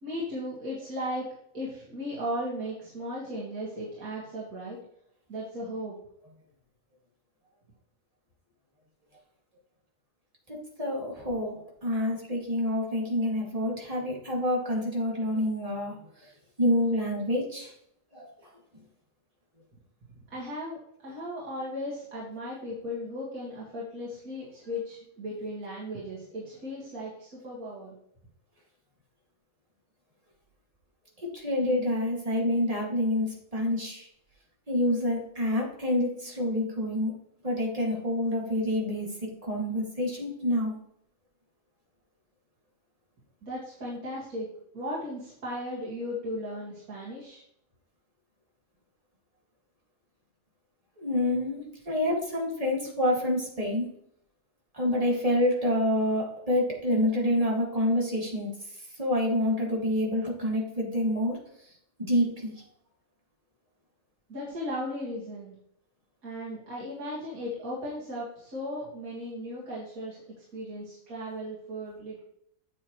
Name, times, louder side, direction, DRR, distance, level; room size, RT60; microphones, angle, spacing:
voice 1, 0.0-1.3 1.5-4.8 5.3-5.9 20.3-28.0 43.4-47.4 64.3-65.5 66.2-70.2 70.5-72.2, equal, 85° right, -6 dB, 2.5 m, -36 dB
voice 2, 10.5-16.0 16.6-17.7 18.1-18.3 31.2-34.1 34.7-37.1 37.4-40.8 51.0-53.9 54.7-61.4 62.0-62.5, left 1 dB, 25° right, -2 dB, 2.3 m, -27 dB
8.7 x 7.5 x 3.1 m, 0.71 s
omnidirectional pair, 1.5 m